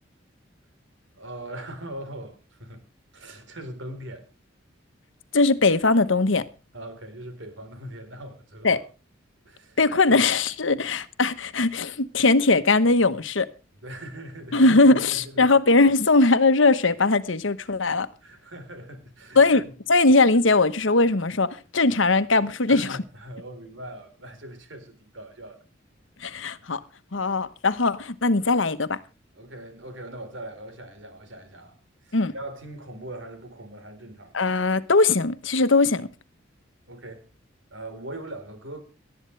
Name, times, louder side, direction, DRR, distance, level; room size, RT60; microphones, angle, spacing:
voice 1, 1.1-2.8 3.1-4.3 6.7-8.8 9.4-9.8 10.1-10.2 13.8-14.8 15.1-15.5 18.2-19.7 22.7-25.6 26.5-26.6 29.3-31.8 32.0-34.4 36.9-37.3 37.7-38.8, right 1 dB, 75° right, 4.1 m, -40 dB
voice 2, 5.3-6.5 8.6-8.8 9.8-13.5 14.5-18.1 19.4-23.0 26.2-26.8 27.1-29.0 32.1-32.3 34.3-36.1, left 3 dB, 75° left, 1.1 m, -20 dB
19.0 x 12.5 x 3.3 m
head